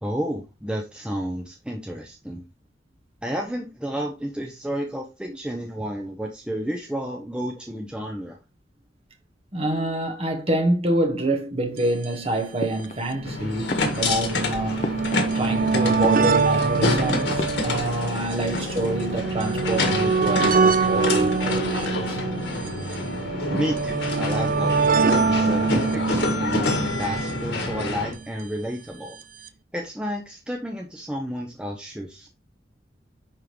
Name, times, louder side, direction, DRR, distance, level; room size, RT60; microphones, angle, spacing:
voice 1, 0.0-2.4 3.2-8.4 23.6-29.2 29.7-32.3, equal, 5° right, 0.7 m, -31 dB
voice 2, 9.5-14.8 15.3-22.2 23.5-23.6, right 1 dB, 35° right, 1.4 m, -26 dB
sound 1, 11.8-11.9 12.0-12.1 13.0-28.2 29.2-29.3 29.5-29.6, right 4 dB, 50° right, 0.5 m, -25 dB
sound 2, 12.6-13.3 13.7-15.7 15.9-16.8 17.4-18.4 18.6-19.2, left 2 dB, 40° left, 0.7 m, -36 dB
sound 3, 13.2-28.1, left 2 dB, 85° left, 1.7 m, -28 dB
9.9 x 3.7 x 3.1 m
head